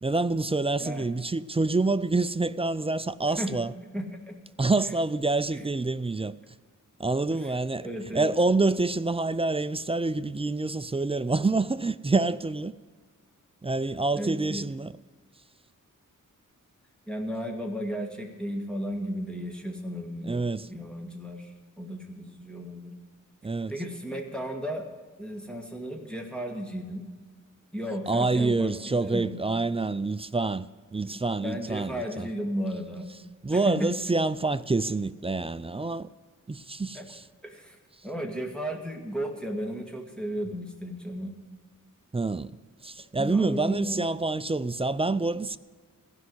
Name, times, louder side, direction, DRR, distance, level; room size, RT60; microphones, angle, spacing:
voice 1, 0.0-3.7 4.6-6.3 7.0-7.9 8.1-12.7 13.6-14.9 20.2-20.7 23.4-23.7 28.1-32.3 33.4-36.1 36.5-37.2 42.1-42.5 42.8-45.6, right 3 dB, 20° right, 0.3 m, -27 dB
voice 2, 3.9-4.4 7.8-8.3 14.1-14.6 17.1-20.4 20.7-21.5 21.8-22.9 23.7-24.9 25.2-27.0 27.7-29.4 31.1-33.1 33.5-33.9 36.9-37.1 37.4-37.8 38.0-41.3 43.2-44.0, equal, 5° left, 1.9 m, -34 dB
15.5 x 5.7 x 9.4 m
wide cardioid pair, 100°, 33 cm